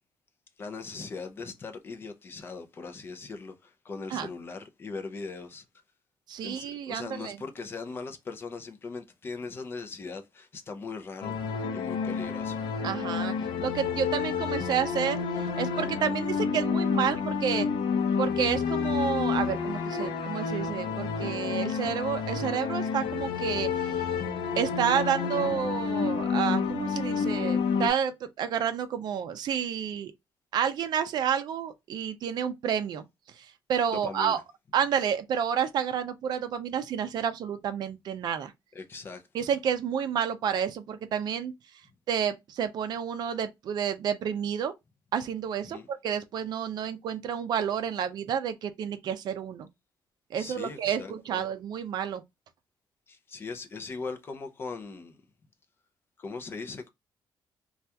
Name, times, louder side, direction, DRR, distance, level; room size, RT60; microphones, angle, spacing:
voice 1, 0.6-5.6 6.4-12.6 33.9-34.4 38.7-39.2 45.6-45.9 50.3-51.4 53.1-55.2 56.2-56.9, left 4 dB, 25° left, 0.5 m, -40 dB
voice 2, 6.3-7.4 12.8-13.3 13.6-15.2 15.6-17.7 18.2-24.0 24.6-30.1 30.5-33.0 33.4-34.4 34.7-38.5 39.3-41.5 42.1-44.7 45.1-49.7 50.3-52.2, right 8 dB, 55° right, 0.5 m, -30 dB
sound 1, 11.2-27.9, left 6 dB, 80° left, 0.5 m, -29 dB
2.8 x 2.3 x 3.2 m
cardioid pair, 180°, 9 cm